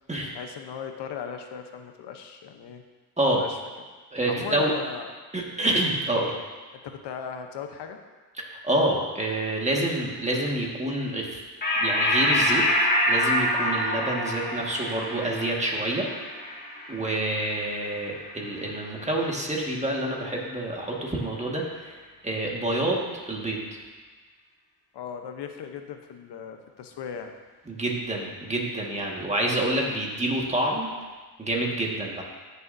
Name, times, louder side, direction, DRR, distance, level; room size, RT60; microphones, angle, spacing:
voice 1, 0.3-2.8 3.4-3.6 4.3-5.1 6.7-8.0 24.9-27.3, left 7 dB, 80° left, 6 dB, 0.9 m, -37 dB
voice 2, 4.1-4.7 5.3-6.3 8.5-11.4 11.8-12.6 13.1-16.1 16.9-22.0 22.2-23.6 27.7-30.9 31.4-32.2, right 1 dB, 15° right, -2 dB, 1.7 m, -27 dB
sound 1, 11.6-18.5, left 1 dB, 25° left, 2.1 m, -26 dB
13.5 x 6.9 x 2.7 m, 1.3 s
cardioid pair, 100°, 41 cm